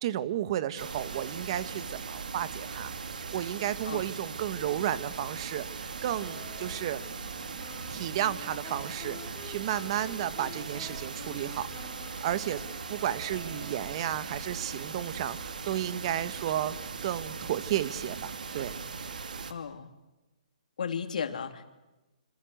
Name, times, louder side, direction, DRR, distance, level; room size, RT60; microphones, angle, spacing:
voice 1, 0.0-2.9 3.3-7.0 7.9-11.9 12.2-12.6 12.9-16.8 17.0-18.8, right 11 dB, 40° right, 13 dB, 1.6 m, -33 dB
sound 1, 0.8-19.5, right 5 dB, 80° right, 2.9 m, -39 dB
sound 2, 6.2-14.5, left 9 dB, 25° left, 2.8 m, -50 dB
voice 2, 19.5-19.9 20.8-21.6, left 7 dB, 70° left, 8 dB, 3.1 m, -34 dB
27.5 x 26.5 x 8.1 m, 1.1 s
hypercardioid pair, 150°, 4 cm